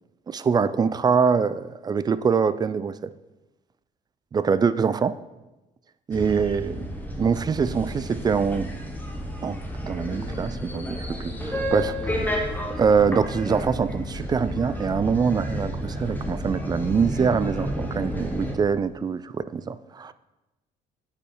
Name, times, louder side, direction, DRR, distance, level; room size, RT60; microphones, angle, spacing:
voice 1, 0.3-3.1 4.3-5.1 6.1-6.9 7.2-8.7 9.4-9.6 9.8-12.2 12.8-20.1, right 6 dB, 25° right, 15 dB, 0.3 m, -24 dB
sound 1, 6.1-18.5, equal, 10° left, 1.1 m, -31 dB
8.3 x 5.5 x 4.5 m, 1.0 s
cardioid pair, 110°, 17 cm